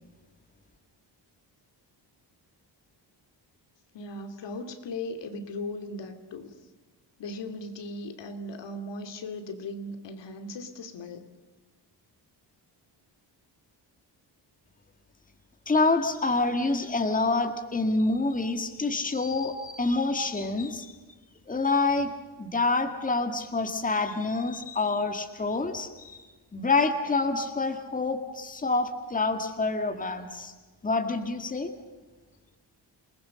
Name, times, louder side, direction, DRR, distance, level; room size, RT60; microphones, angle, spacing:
voice 1, 3.9-6.6 7.2-11.3, left 2 dB, 75° left, 7 dB, 2.8 m, -38 dB
voice 2, 15.7-20.9 21.5-22.1 22.4-26.2 26.5-30.5 30.8-31.7, left 3 dB, 20° left, 6 dB, 2.0 m, -27 dB
28.5 x 20.0 x 6.5 m, 1.3 s
cardioid pair, 130°, 43 cm